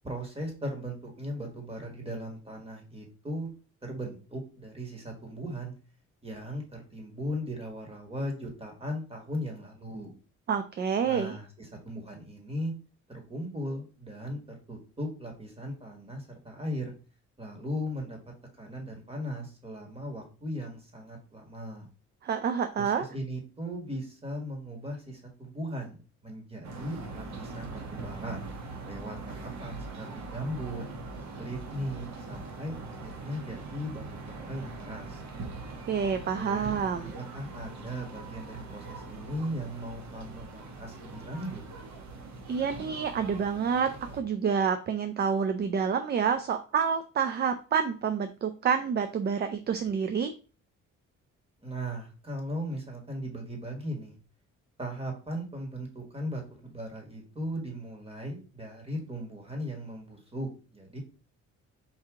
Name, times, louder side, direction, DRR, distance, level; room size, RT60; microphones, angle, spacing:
voice 1, 0.0-3.5 3.8-5.7 6.2-10.1 11.0-12.7 13.1-16.9 17.4-18.2 18.6-21.9 22.8-28.4 28.8-30.9 31.4-35.2 36.0-36.8 37.2-41.6 51.6-54.1 54.8-61.0, equal, 20° right, 1 dB, 1.8 m, -38 dB
voice 2, 10.5-11.4 22.2-23.1 35.9-37.1 42.5-50.3, right 6 dB, 35° right, 9 dB, 0.4 m, -28 dB
sound 1, 26.6-44.2, right 3 dB, 65° right, 1.1 m, -42 dB
4.6 x 2.8 x 3.6 m, 0.36 s
cardioid pair, 90°, 30 cm